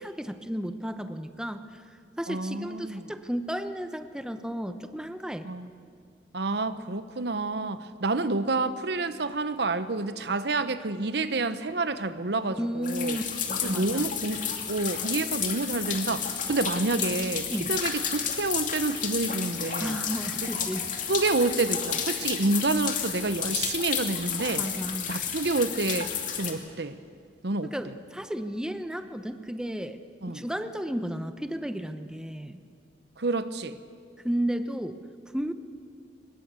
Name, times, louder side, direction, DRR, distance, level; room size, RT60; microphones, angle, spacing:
voice 1, 0.0-1.8 2.2-5.5 12.5-13.2 13.5-14.1 17.5-17.7 19.8-20.9 24.6-25.1 27.7-30.0 30.3-32.6 34.2-35.0 35.3-35.5, equal, 5° right, 9 dB, 0.9 m, -33 dB
voice 2, 2.3-3.0 5.4-5.7 6.3-13.2 13.6-14.4 14.7-20.0 21.1-24.6 25.1-27.0 27.4-27.7 30.2-30.4 33.2-33.8, right 3 dB, 70° right, 12 dB, 1.0 m, -28 dB
sound 1, 12.8-26.5, left 7 dB, 45° left, 2.7 m, -31 dB
24.0 x 21.0 x 8.2 m, 2.2 s
head